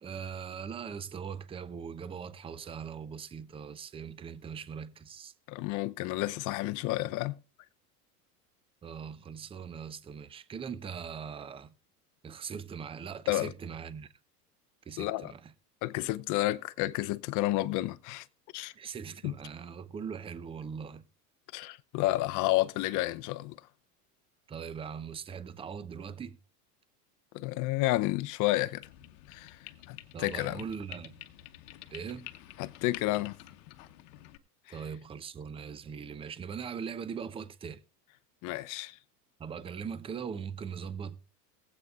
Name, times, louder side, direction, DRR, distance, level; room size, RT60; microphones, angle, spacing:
voice 1, 0.0-5.3 8.8-11.7 12.2-14.1 14.9-15.5 18.7-21.0 24.5-26.4 30.1-31.2 31.9-32.3 34.7-37.8 39.4-41.2, right 6 dB, 10° right, 0.5 m, -40 dB
voice 2, 5.5-7.4 13.3-13.5 15.0-15.3 15.8-18.3 18.5-18.7 19.2-19.3 21.5-23.6 27.3-28.9 29.3-29.6 29.9-30.6 32.6-33.4 34.7-34.8 38.4-39.0, left 17 dB, 40° left, 0.6 m, -31 dB
sound 1, 28.8-34.4, left 15 dB, 60° left, 1.0 m, -49 dB
21.5 x 8.1 x 2.4 m
hypercardioid pair, 100°, 47 cm